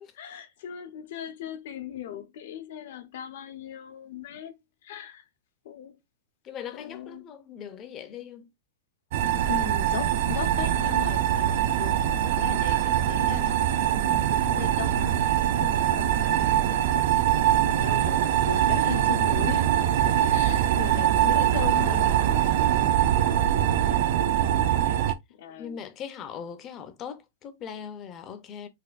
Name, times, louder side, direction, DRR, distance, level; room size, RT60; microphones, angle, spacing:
voice 1, 0.1-5.2 5.6-6.0 6.7-7.2 9.5-13.7 13.9-15.1 15.6-23.4 24.5-25.0 25.4-25.8, left 9 dB, 60° left, 0.8 m, -38 dB
voice 2, 6.4-8.5 17.8-17.9 20.9-21.3 25.0-25.1 25.6-28.7, left 8 dB, 25° left, 0.5 m, -40 dB
sound 1, 9.1-25.1, right 11 dB, 50° right, 0.4 m, -23 dB
4.2 x 2.5 x 2.4 m
supercardioid pair, 165°, 0 cm